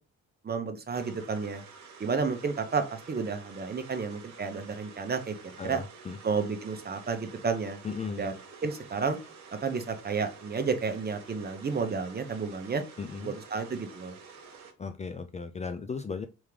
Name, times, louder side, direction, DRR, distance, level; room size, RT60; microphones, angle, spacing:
voice 1, 0.4-1.6 2.0-5.3 5.6-5.8 6.2-7.8 8.2-8.3 8.6-9.2 9.6-12.8 13.2-14.1, right 5 dB, 30° right, 7 dB, 0.8 m, -31 dB
sound 1, 0.9-14.7, right 5 dB, 65° right, 1.2 m, -50 dB
voice 2, 5.6-6.2 7.8-8.3 13.0-13.3 14.8-16.3, left 5 dB, 25° left, 9 dB, 0.4 m, -36 dB
3.6 x 3.5 x 3.2 m, 0.30 s
cardioid pair, 90°, 30 cm